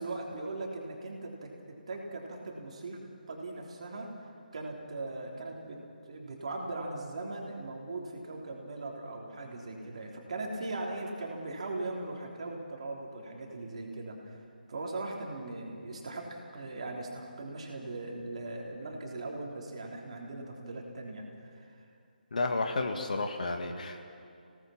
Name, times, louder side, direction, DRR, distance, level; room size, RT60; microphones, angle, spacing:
voice 1, 0.0-3.0 3.3-4.1 4.5-14.4 14.7-21.8, right 2 dB, 45° right, 0 dB, 3.5 m, -39 dB
voice 2, 22.3-24.0, left 3 dB, 55° left, 5 dB, 1.9 m, -31 dB
27.5 x 18.0 x 6.0 m, 2.4 s
figure-of-eight pair, 145°, 5 cm